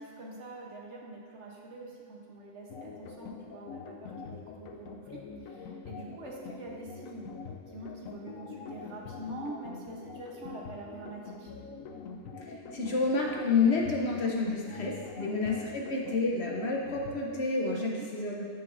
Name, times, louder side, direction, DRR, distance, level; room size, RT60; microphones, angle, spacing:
voice 1, 0.0-7.3 7.7-11.5 15.2-15.4 17.7-18.1, right 1 dB, 60° right, -2 dB, 1.3 m, -44 dB
sound 1, 2.7-17.4, left 5 dB, 85° left, 1.0 m, -45 dB
voice 2, 12.4-18.4, left 3 dB, 55° left, -1 dB, 1.1 m, -29 dB
9.2 x 7.2 x 2.6 m, 2.1 s
omnidirectional pair, 1.4 m